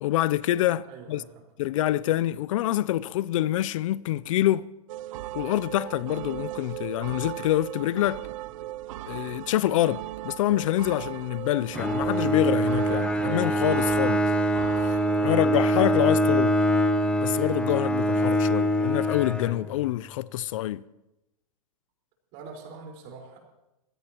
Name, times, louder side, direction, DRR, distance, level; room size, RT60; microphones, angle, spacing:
voice 1, 0.0-1.2 1.6-4.7 5.3-8.2 9.1-14.2 14.8-15.0 15.2-16.6 17.2-20.8, left 14 dB, 60° left, 0.4 m, -26 dB
voice 2, 0.8-1.4 22.3-23.4, right 4 dB, 45° right, 4.5 m, -44 dB
sound 1, 4.9-15.4, right 15 dB, 60° right, 0.6 m, -38 dB
Bowed string instrument, 11.7-20.0, right 1 dB, 5° left, 0.6 m, -24 dB
25.5 x 16.0 x 3.0 m
hypercardioid pair, 130°, 19 cm